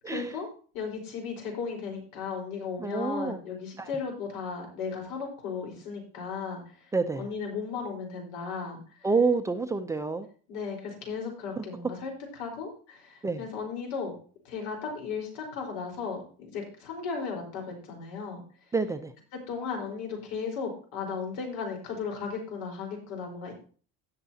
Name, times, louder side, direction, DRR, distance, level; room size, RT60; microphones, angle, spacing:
voice 1, 0.1-0.5 0.7-9.1 10.5-14.2 14.4-18.4 19.5-23.5, left 5 dB, 90° left, 1 dB, 4.2 m, -36 dB
voice 2, 2.8-3.4 3.8-3.9 6.9-7.3 9.0-10.3 11.6-11.7 13.2-13.4 18.7-19.1, right 4 dB, 10° right, 8 dB, 0.4 m, -28 dB
17.5 x 6.6 x 2.8 m, 0.40 s
cardioid pair, 165°, 31 cm